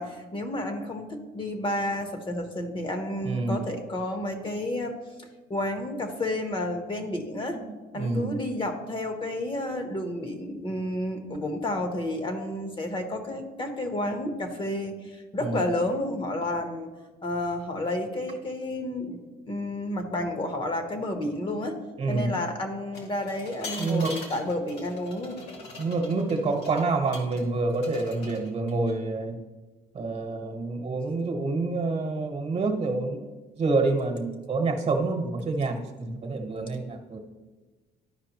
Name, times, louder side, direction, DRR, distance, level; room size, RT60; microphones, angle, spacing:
voice 1, 0.0-7.6 7.9-16.9 17.2-19.2 19.5-21.8 22.1-25.4, left 1 dB, 30° left, 5 dB, 1.0 m, -31 dB
voice 2, 3.2-3.7 7.6-8.4 15.4-15.7 22.0-22.3 23.8-24.2 25.8-29.4 29.9-37.2, right 3 dB, 40° right, 4 dB, 1.2 m, -28 dB
sound 1, 22.9-27.4 27.7-28.9, left 3 dB, 90° left, 1.8 m, -42 dB
12.5 x 5.0 x 3.0 m, 1.3 s
cardioid pair, 110°, 17 cm